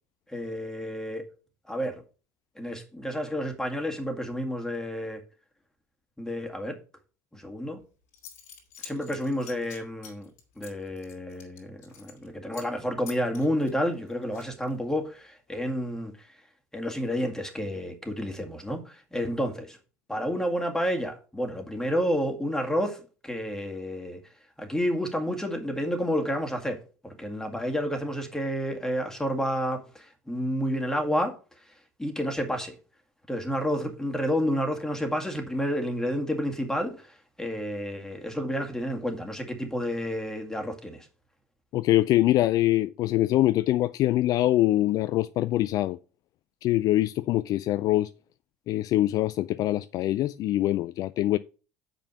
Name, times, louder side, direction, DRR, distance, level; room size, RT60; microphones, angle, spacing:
voice 1, 0.3-1.3 1.7-2.0 2.6-5.2 6.2-6.8 7.3-7.8 8.8-10.3 10.6-16.3 16.7-19.8 20.1-24.2 24.6-31.4 32.0-32.8 33.3-41.1, equal, 5° left, 2.0 m, -30 dB
Zipper (clothing) / Coin (dropping), 7.8-7.9 8.1-12.3 12.5-12.8 13.1-14.8, left 7 dB, 75° left, 2.2 m, -47 dB
voice 2, 41.7-46.0 46.6-48.1 48.7-51.4, left 15 dB, 50° left, 0.3 m, -24 dB
7.0 x 5.3 x 5.8 m
hypercardioid pair, 65°, 8 cm